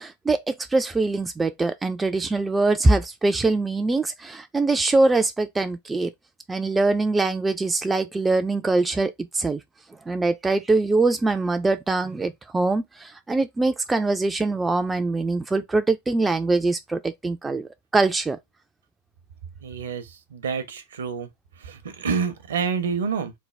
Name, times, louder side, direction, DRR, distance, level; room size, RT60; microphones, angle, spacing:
voice 1, 0.0-6.1 6.5-9.6 10.1-18.4, right 3 dB, 10° right, 0.3 m, -23 dB
voice 2, 19.6-20.0 20.3-21.3 21.7-23.3, right 6 dB, 65° right, 0.7 m, -27 dB
3.5 x 2.1 x 3.2 m
figure-of-eight pair, 90°, 0 cm